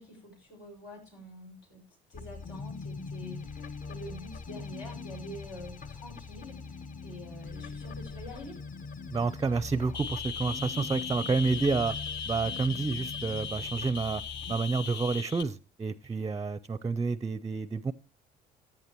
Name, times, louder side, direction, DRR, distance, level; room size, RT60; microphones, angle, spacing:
voice 1, 0.0-1.8 2.1-8.6, equal, 90° left, 0 dB, 6.1 m, -46 dB
sound 1, 2.1-14.6, left 4 dB, 40° left, 1.0 m, -42 dB
voice 2, 9.1-11.9 12.3-14.2 14.5-17.9, right 4 dB, 20° right, 18 dB, 0.5 m, -29 dB
sound 2, 9.9-15.4, left 6 dB, 65° left, 0.7 m, -38 dB
15.0 x 10.5 x 3.0 m, 0.30 s
cardioid pair, 90°, 20 cm